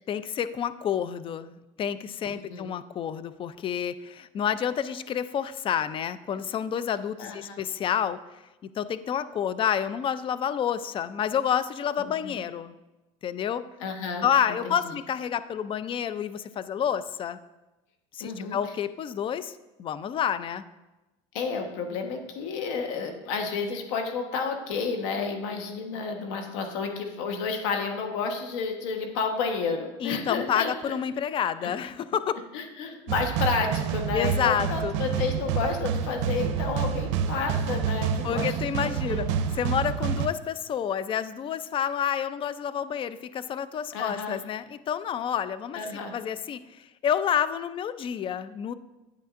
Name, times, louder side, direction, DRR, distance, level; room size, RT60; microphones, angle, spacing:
voice 1, 0.1-8.2 8.8-12.7 13.2-13.6 14.2-17.4 18.1-19.5 19.8-20.6 30.0-32.4 34.1-34.9 38.2-39.3 39.6-45.8 46.1-48.7, left 8 dB, 35° left, 14 dB, 0.4 m, -29 dB
voice 2, 2.3-2.7 7.2-7.6 12.0-12.4 13.8-14.3 14.6-14.9 18.2-18.7 21.3-31.0 32.5-39.4 43.9-44.4 45.7-46.2, left 5 dB, 80° left, 4 dB, 1.2 m, -31 dB
sound 1, 33.1-40.3, right 7 dB, 80° right, 0.6 m, -28 dB
9.3 x 9.2 x 2.5 m, 1.0 s
supercardioid pair, 105°, 16 cm